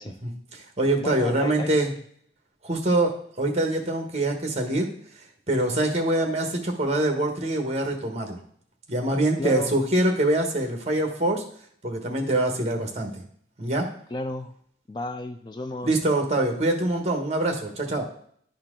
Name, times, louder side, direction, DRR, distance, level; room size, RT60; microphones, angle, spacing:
voice 1, 0.2-1.9 2.6-3.1 3.4-4.9 5.5-8.4 8.9-11.4 11.8-13.2 13.6-13.9 15.8-18.1, right 1 dB, 35° right, 3 dB, 1.2 m, -24 dB
voice 2, 1.0-1.7 9.4-9.8 14.1-14.6 14.9-16.0, left 1 dB, 25° left, 7 dB, 0.3 m, -33 dB
11.0 x 4.4 x 3.7 m, 0.63 s
head